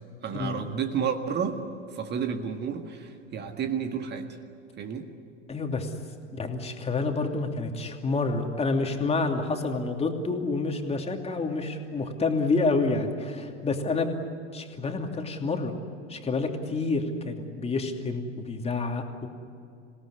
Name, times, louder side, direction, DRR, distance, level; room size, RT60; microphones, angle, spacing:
voice 1, 0.2-1.6 1.9-4.3 4.8-5.1, right 7 dB, 30° right, 6 dB, 1.8 m, -31 dB
voice 2, 5.5-5.9 6.3-14.2 14.5-15.7 16.1-19.3, left 3 dB, 15° left, 3 dB, 2.8 m, -28 dB
27.0 x 18.0 x 9.8 m, 2.5 s
figure-of-eight pair, 90°, 35 cm